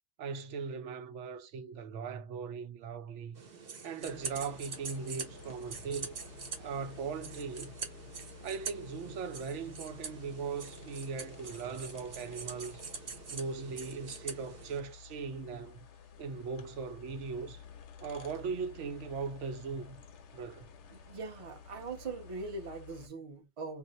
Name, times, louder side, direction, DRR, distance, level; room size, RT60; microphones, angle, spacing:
voice 1, 0.2-3.4 3.8-6.1 6.6-7.7 8.4-12.8 13.3-15.8 16.2-17.6 18.0-20.0 20.3-20.7, right 5 dB, 85° right, 0.9 m, -39 dB
sound 1, 3.4-14.8, right 5 dB, 55° right, 1.0 m, -45 dB
sound 2, 4.0-23.1, left 7 dB, 75° left, 0.9 m, -53 dB
voice 2, 20.9-23.8, right 3 dB, 35° right, 0.7 m, -41 dB
2.5 x 2.0 x 3.9 m
omnidirectional pair, 1.2 m